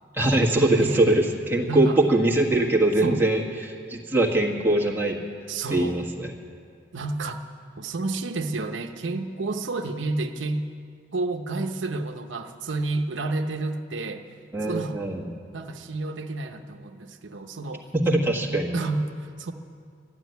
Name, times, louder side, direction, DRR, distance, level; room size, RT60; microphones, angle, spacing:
voice 1, 0.1-5.2 5.7-6.3 14.5-15.3 17.9-18.7, right 1 dB, 10° right, -2 dB, 1.5 m, -22 dB
voice 2, 1.7-2.0 3.0-3.2 5.5-6.0 6.9-7.4 7.8-10.7 11.1-14.3 14.6-15.0 15.5-17.9 18.5-19.5, right 3 dB, 85° right, 5 dB, 0.8 m, -30 dB
12.5 x 12.0 x 9.2 m, 2.2 s
head